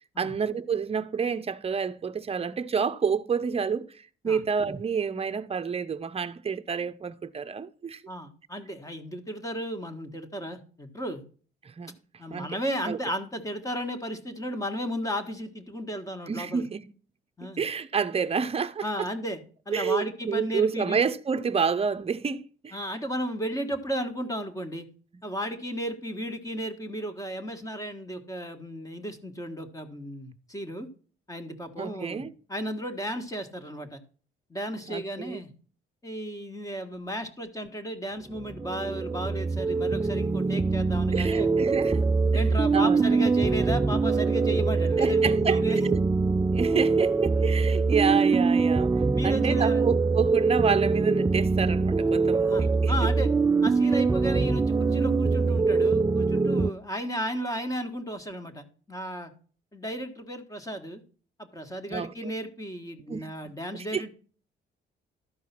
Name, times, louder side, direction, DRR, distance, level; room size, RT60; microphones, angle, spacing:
voice 1, 0.2-8.0 11.6-11.9 12.3-12.6 12.8-13.0 16.3-16.9 17.6-18.8 19.7-22.8 31.8-32.3 34.9-35.4 41.1-42.1 42.3-42.4 42.7-43.2 45.0-46.0 46.5-52.9 61.9-62.3 63.1-63.3 63.7-64.0, right 6 dB, 30° right, 0.7 m, -29 dB
voice 2, 8.1-11.2 12.2-16.6 17.4-17.6 18.8-19.4 19.7-21.0 22.7-24.9 25.2-30.9 31.3-32.2 32.5-34.0 34.5-35.5 36.0-41.5 42.3-45.8 49.1-49.8 52.4-53.3 53.6-59.3 59.7-61.0 61.4-64.1, equal, 15° left, 1.6 m, -34 dB
sound 1, 38.3-56.7, right 4 dB, 15° right, 0.3 m, -23 dB
12.5 x 4.7 x 5.9 m
cardioid pair, 90°, 20 cm